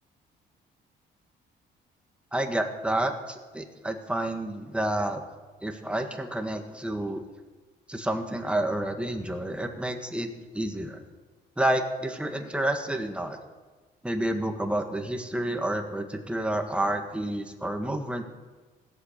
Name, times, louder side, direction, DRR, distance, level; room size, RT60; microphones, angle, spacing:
voice 1, 2.3-5.2 5.6-7.2 7.9-11.0 11.6-13.4 14.0-18.3, right 1 dB, 5° right, 5 dB, 1.5 m, -29 dB
16.0 x 8.2 x 6.7 m, 1.3 s
cardioid pair, 90°, 20 cm